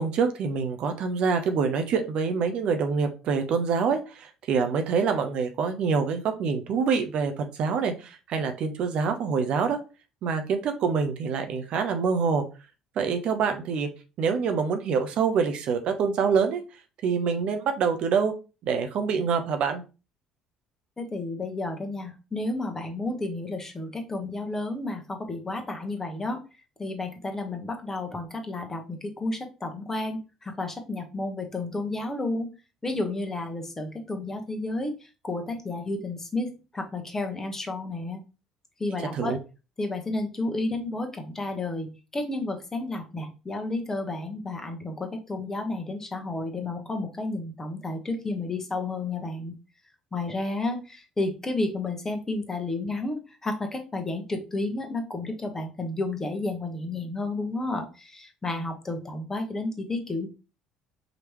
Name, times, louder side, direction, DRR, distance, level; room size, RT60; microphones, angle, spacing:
voice 1, 0.0-9.8 10.2-12.4 13.0-13.9 14.2-16.6 17.0-18.3 18.6-19.8 39.1-39.4, right 5 dB, 55° right, 6 dB, 0.7 m, -26 dB
voice 2, 21.0-26.4 26.8-32.5 32.8-34.9 35.2-38.2 38.8-39.4 39.8-49.5 50.1-60.3, left 2 dB, 20° left, 4 dB, 1.2 m, -31 dB
5.0 x 3.2 x 3.1 m, 0.31 s
figure-of-eight pair, 55°, 2 cm